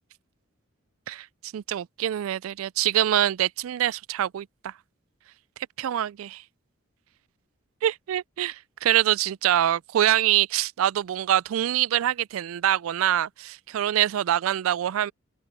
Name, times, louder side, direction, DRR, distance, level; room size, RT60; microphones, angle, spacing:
voice 1, 1.5-4.7 5.8-6.4 7.8-15.1, right 11 dB, 80° right, 0.3 m, -25 dB
open air
head